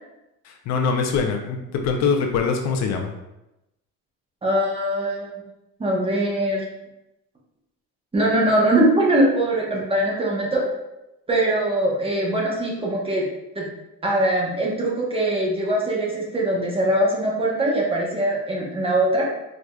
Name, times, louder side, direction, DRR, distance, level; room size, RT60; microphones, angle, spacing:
voice 1, 0.5-3.1, left 5 dB, 55° left, 3 dB, 0.5 m, -23 dB
voice 2, 4.4-5.3 5.8-6.6 8.1-10.6 11.3-13.2 13.5-13.7 14.0-19.3, right 1 dB, 15° right, -3 dB, 0.8 m, -22 dB
4.7 x 2.5 x 2.3 m, 0.92 s
cardioid pair, 130°, 32 cm